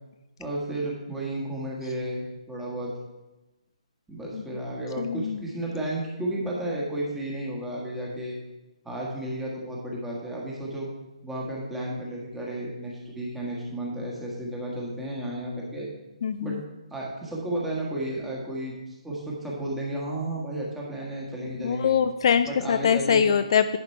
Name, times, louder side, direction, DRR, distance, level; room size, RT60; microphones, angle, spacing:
voice 1, 0.4-2.9 4.1-8.4 8.8-10.9 11.2-15.9 16.4-16.6 16.9-21.9 22.5-23.3, right 1 dB, 5° right, -4 dB, 1.5 m, -32 dB
voice 2, 5.0-5.4 16.2-16.6 21.6-23.8, left 7 dB, 45° left, 10 dB, 0.3 m, -23 dB
10.5 x 5.1 x 4.5 m, 1.1 s
hypercardioid pair, 160°, 4 cm